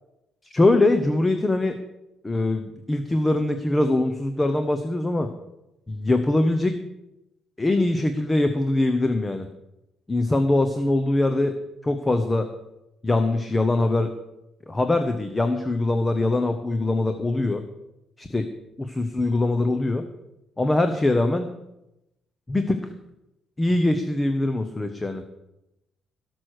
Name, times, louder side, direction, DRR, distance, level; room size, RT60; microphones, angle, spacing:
voice 1, 0.5-1.8 2.2-5.3 5.9-6.7 7.6-9.5 10.1-11.6 11.8-12.5 13.0-14.1 14.7-17.6 18.2-18.4 18.8-20.0 20.6-21.5 22.5-22.8 23.6-25.2, left 2 dB, 15° left, 8 dB, 0.9 m, -22 dB
17.5 x 6.3 x 6.5 m, 0.90 s
cardioid pair, 155°, 0 cm